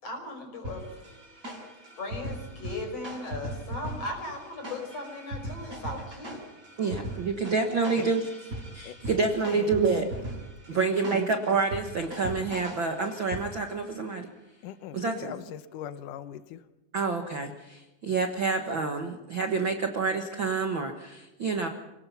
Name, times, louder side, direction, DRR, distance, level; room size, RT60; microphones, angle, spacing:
voice 1, 0.0-0.8 2.0-6.4, left 2 dB, 45° left, 3 dB, 6.2 m, -37 dB
sound 1, 0.6-13.8, right 1 dB, 20° right, 5.9 m, -40 dB
voice 2, 6.8-8.2 8.7-10.1 10.7-14.3 14.9-15.3 16.9-21.7, right 4 dB, 55° right, 5 dB, 1.4 m, -28 dB
voice 3, 8.9-9.8 10.7-11.2 14.6-16.6, left 11 dB, 75° left, 13 dB, 2.4 m, -41 dB
27.5 x 18.5 x 5.8 m, 1.0 s
omnidirectional pair, 4.1 m